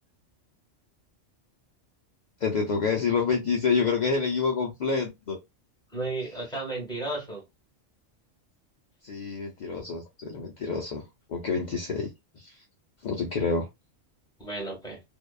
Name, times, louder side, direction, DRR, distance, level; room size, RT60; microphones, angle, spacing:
voice 1, 2.4-5.4 9.0-11.0 11.3-12.1 12.4-12.6 13.0-13.7, left 5 dB, 55° left, 0.5 m, -27 dB
voice 2, 5.9-7.4 14.4-15.0, right 2 dB, 5° left, 1.0 m, -33 dB
2.8 x 2.2 x 2.3 m
omnidirectional pair, 1.3 m